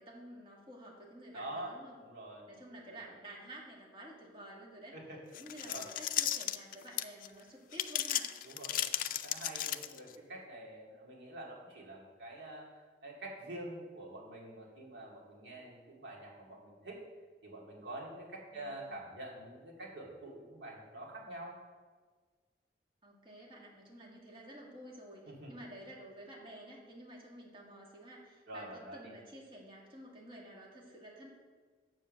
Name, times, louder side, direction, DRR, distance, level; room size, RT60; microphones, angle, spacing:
voice 1, 0.0-2.0 2.5-5.0 5.3-8.3 18.5-19.0 23.0-25.2 25.5-31.3, right 1 dB, 30° right, -2 dB, 2.0 m, -51 dB
voice 2, 1.3-2.5 2.9-3.0 4.9-5.2 5.6-5.9 8.4-17.0 17.4-21.6 25.3-25.5 28.5-29.1, right 1 dB, 80° right, -3 dB, 2.4 m, -46 dB
sound 1, 5.3-7.3 7.7-10.2, left 12 dB, 50° left, 0.4 m, -35 dB
7.5 x 7.2 x 6.4 m, 1.5 s
head